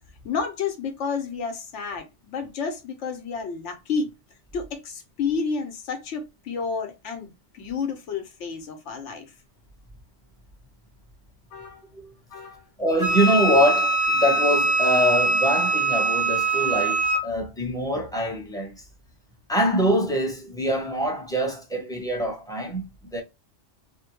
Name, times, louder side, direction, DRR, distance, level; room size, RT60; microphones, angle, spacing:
voice 1, 0.2-4.1 4.5-9.3 11.5-11.8 12.3-12.6, left 5 dB, 85° left, 1.1 m, -30 dB
voice 2, 12.8-18.8 19.5-22.8 23.1-23.2, equal, 5° left, 0.6 m, -24 dB
Wind instrument woodwind instrument, 13.0-17.3, right 2 dB, 45° left, 0.9 m, -22 dB
2.7 x 2.1 x 2.8 m
omnidirectional pair, 1.2 m